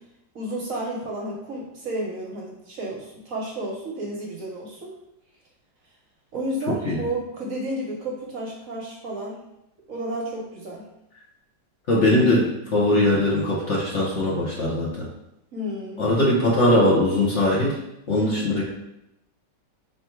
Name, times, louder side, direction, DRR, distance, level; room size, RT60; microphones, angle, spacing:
voice 1, 0.3-4.9 6.3-9.4 9.9-10.8 15.5-16.2 18.2-18.6, right 1 dB, 60° right, -2 dB, 1.1 m, -32 dB
voice 2, 11.9-12.4 12.7-14.9 16.0-17.7 18.1-18.6, left 1 dB, 50° left, -5 dB, 1.1 m, -20 dB
4.5 x 2.7 x 4.4 m, 0.86 s
omnidirectional pair, 1.9 m